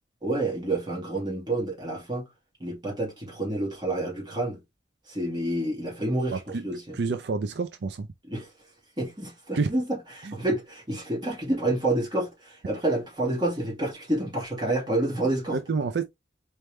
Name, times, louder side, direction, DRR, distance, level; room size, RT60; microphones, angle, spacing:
voice 1, 0.2-2.3 2.6-4.6 5.1-6.4 6.6-7.0 8.3-8.5 9.0-15.6, right 1 dB, 25° right, 2.0 m, -28 dB
voice 2, 6.3-6.6 6.9-8.1 9.5-9.7 10.2-10.3 15.5-16.0, right 4 dB, 70° right, 0.5 m, -28 dB
4.3 x 3.5 x 3.1 m
head